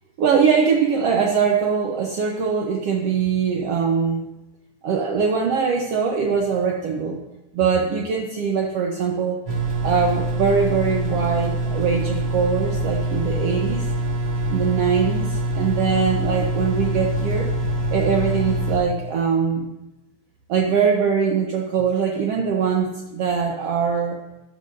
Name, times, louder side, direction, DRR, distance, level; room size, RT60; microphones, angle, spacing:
voice 1, 0.2-4.3 4.8-7.2 7.5-9.4 9.8-13.9 14.5-17.5 17.9-19.7 20.5-24.2, right 6 dB, 75° right, 0 dB, 1.4 m, -22 dB
sound 1, 9.5-18.8, right 1 dB, 35° right, 3.1 m, -24 dB
14.5 x 11.0 x 2.7 m, 0.95 s
omnidirectional pair, 4.0 m